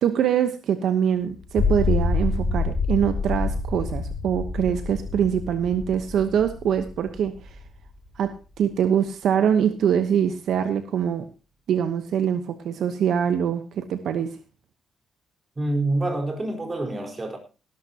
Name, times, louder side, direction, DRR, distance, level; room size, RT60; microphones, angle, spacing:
voice 1, 0.0-7.3 8.2-11.2 11.7-14.3, right 8 dB, 70° right, 1.1 m, -24 dB
sound 1, 1.4-7.9, left 4 dB, 40° left, 4.3 m, -27 dB
voice 2, 15.6-17.4, right 2 dB, 25° right, 4.5 m, -26 dB
17.5 x 12.5 x 2.9 m
cardioid pair, 90°, 0 cm